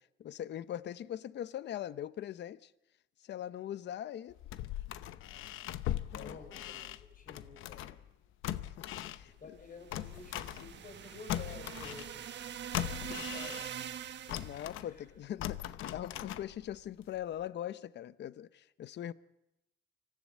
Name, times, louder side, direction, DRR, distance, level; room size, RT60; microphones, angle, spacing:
voice 1, 0.0-2.7 3.2-4.4 6.1-6.4 8.8-9.6 12.8-13.2 14.4-19.1, left 11 dB, 60° left, 0.7 m, -41 dB
sound 1, 4.3-8.1 8.4-11.0 11.3-13.9 14.3-16.8 17.2-17.3, left 12 dB, 90° left, 0.8 m, -40 dB
voice 2, 6.1-6.9 7.1-7.9 9.4-12.2 12.8-13.6 14.5-15.2, left 4 dB, 45° left, 4.3 m, -51 dB
sound 2, 9.8-14.7, right 9 dB, 65° right, 1.3 m, -44 dB
25.0 x 16.0 x 7.5 m
cardioid pair, 90°, 20 cm